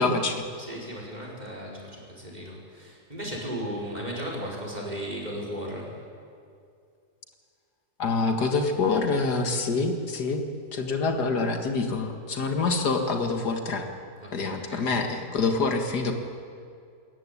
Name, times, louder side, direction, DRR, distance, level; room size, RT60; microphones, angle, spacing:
voice 1, 0.0-0.4 8.0-10.5 10.7-13.9 14.3-16.1, left 3 dB, 80° left, 5 dB, 2.3 m, -26 dB
voice 2, 0.6-5.9 14.2-14.9, equal, 25° right, -2 dB, 4.9 m, -36 dB
26.0 x 14.5 x 9.8 m, 2.4 s
omnidirectional pair, 1.7 m